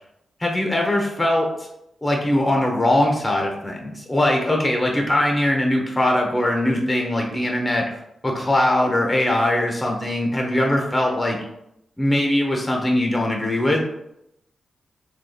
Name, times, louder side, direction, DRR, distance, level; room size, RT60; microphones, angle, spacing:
voice 1, 0.4-1.5 2.0-7.8 8.2-11.4 12.0-13.8, left 1 dB, 20° left, 1 dB, 0.8 m, -21 dB
3.7 x 2.3 x 2.4 m, 0.82 s
cardioid pair, 60°, 0 cm